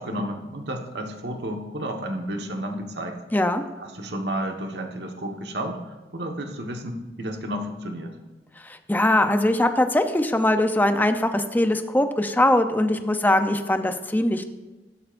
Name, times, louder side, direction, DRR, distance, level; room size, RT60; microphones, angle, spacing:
voice 1, 0.0-3.2 3.8-8.1, right 1 dB, 70° right, 3 dB, 1.4 m, -32 dB
voice 2, 3.3-3.6 8.6-14.4, left 1 dB, 10° left, 7 dB, 0.6 m, -21 dB
15.5 x 12.0 x 2.6 m, 1.2 s
head